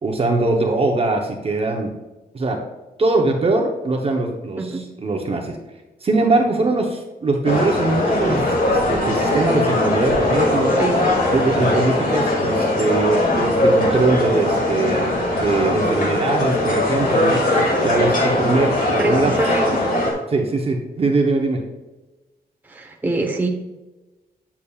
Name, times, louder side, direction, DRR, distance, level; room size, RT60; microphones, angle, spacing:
voice 1, 0.0-1.9 2.3-2.6 3.0-5.6 6.0-10.7 11.3-17.4 17.8-19.3 20.3-21.6, right 3 dB, 35° right, 2 dB, 0.8 m, -21 dB
sound 1, 7.4-20.1, left 1 dB, 60° left, 2.1 m, -20 dB
voice 2, 10.8-11.2 19.0-19.7 22.7-23.5, right 2 dB, 10° right, 0 dB, 1.0 m, -24 dB
8.2 x 7.1 x 2.4 m, 1.1 s
wide cardioid pair, 125°, 16 cm